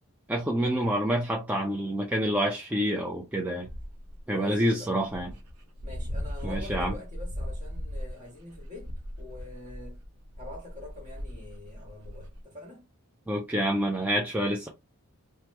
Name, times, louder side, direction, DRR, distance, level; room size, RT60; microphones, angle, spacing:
voice 1, 0.3-3.7 4.3-5.3 6.4-6.9 13.3-14.7, equal, 5° right, 0.4 m, -27 dB
Dog, 3.6-4.2 4.8-4.9 5.1-12.4, equal, 80° right, 0.8 m, -38 dB
voice 2, 4.3-4.9 5.8-8.9 9.2-10.0 10.4-12.8, left 2 dB, 35° right, 1.6 m, -45 dB
3.0 x 2.2 x 3.2 m
head